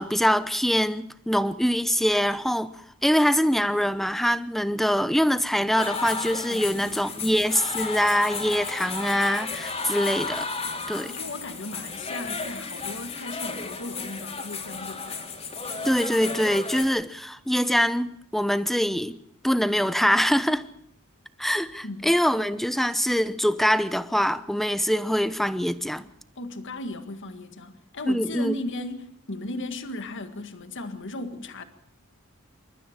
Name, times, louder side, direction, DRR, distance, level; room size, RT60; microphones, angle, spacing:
voice 1, 0.0-10.5 10.9-11.1 15.8-19.1 19.4-20.6 21.4-26.1 28.0-28.5, equal, ahead, 0.9 m, -24 dB
sound 1, 5.8-16.9, left 4 dB, 30° left, 3.1 m, -33 dB
voice 2, 6.5-7.2 11.0-15.3 21.8-22.1 26.4-31.6, left 1 dB, 60° left, 1.9 m, -36 dB
28.5 x 14.0 x 7.3 m
head